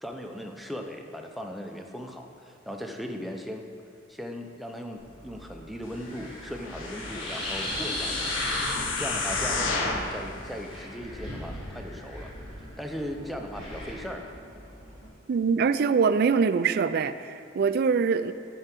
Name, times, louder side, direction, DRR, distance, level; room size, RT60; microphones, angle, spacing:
voice 1, 0.0-3.7 4.1-12.3 12.8-14.2, equal, ahead, 3 dB, 0.6 m, -38 dB
Wind, 5.0-15.1, left 1 dB, 30° left, 2.5 m, -37 dB
sound 1, 6.6-10.1 10.7-10.8, left 3 dB, 90° left, 1.0 m, -31 dB
voice 2, 15.3-18.3, right 5 dB, 55° right, 13 dB, 0.3 m, -23 dB
11.0 x 4.7 x 5.9 m, 2.4 s
head